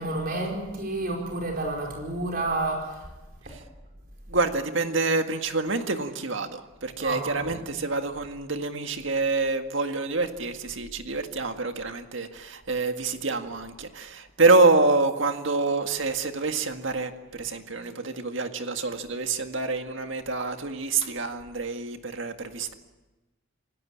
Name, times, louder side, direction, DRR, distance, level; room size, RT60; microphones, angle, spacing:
voice 1, 0.0-3.0 7.0-7.5, right 2 dB, 45° right, 0 dB, 4.9 m, -30 dB
voice 2, 4.3-22.7, right 3 dB, 60° right, 6 dB, 1.9 m, -26 dB
27.5 x 17.5 x 8.6 m, 1.1 s
head